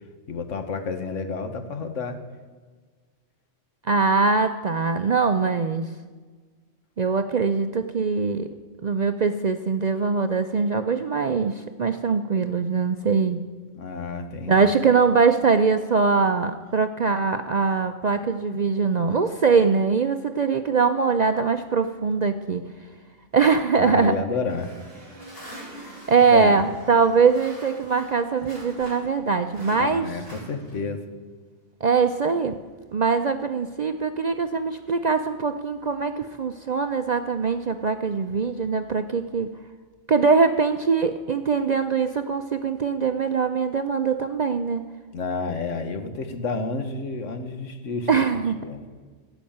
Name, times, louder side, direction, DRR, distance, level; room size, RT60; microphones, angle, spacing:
voice 1, 0.3-2.2 13.7-14.6 23.8-24.7 26.3-26.6 29.7-31.0 45.1-48.1 48.6-48.9, left 4 dB, 80° left, 8 dB, 1.5 m, -30 dB
voice 2, 3.9-5.8 7.0-8.5 8.8-13.4 14.5-22.6 23.3-24.1 26.1-30.1 31.8-32.6 32.9-39.5 40.1-44.9 48.1-48.6, right 5 dB, 50° right, 8 dB, 0.5 m, -22 dB
sound 1, 24.5-29.2 29.5-31.0, right 1 dB, 50° left, 5.0 m, -43 dB
16.0 x 6.1 x 8.6 m, 1.4 s
omnidirectional pair, 1.3 m